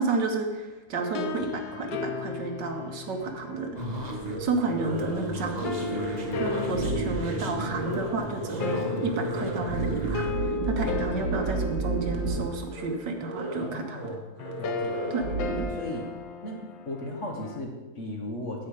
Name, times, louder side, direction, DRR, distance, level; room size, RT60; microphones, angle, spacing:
voice 1, 0.0-3.7 4.4-14.0 15.1-15.2, right 3 dB, 65° right, 4 dB, 1.6 m, -31 dB
sound 1, 1.0-4.3 5.6-17.6, left 6 dB, 75° left, 1.4 m, -36 dB
sound 2, 3.7-10.3, right 1 dB, 25° right, 1.3 m, -34 dB
sound 3, 4.2-4.4 4.7-5.2 5.5-5.6 5.9-7.3 7.6-8.1 8.4-8.5 8.8-12.4 12.7-12.9 13.2-13.7 13.9-14.1 14.4-15.6, right 3 dB, 85° right, 2.2 m, -32 dB
voice 2, 13.6-14.2 14.6-15.3 15.6-16.1 16.4-18.7, left 1 dB, 45° left, 1 dB, 1.5 m, -37 dB
9.6 x 8.6 x 4.9 m, 1.2 s
omnidirectional pair, 2.1 m